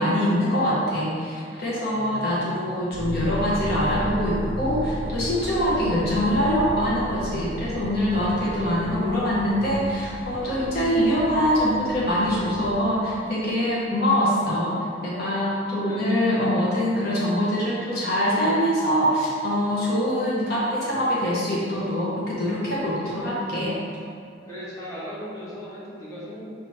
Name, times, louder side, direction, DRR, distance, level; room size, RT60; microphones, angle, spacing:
voice 1, 0.0-14.8 15.0-23.8, equal, 55° left, -7 dB, 0.8 m, -24 dB
voice 2, 1.9-2.5 8.2-8.7 15.9-16.1 16.4-16.7 24.4-26.5, equal, 15° left, -9 dB, 1.1 m, -38 dB
sound 1, 2.9-12.8, right 2 dB, 85° right, 0.4 m, -40 dB
sound 2, 3.0-12.4, equal, ahead, 0.6 m, -35 dB
5.8 x 3.0 x 3.0 m, 2.3 s
head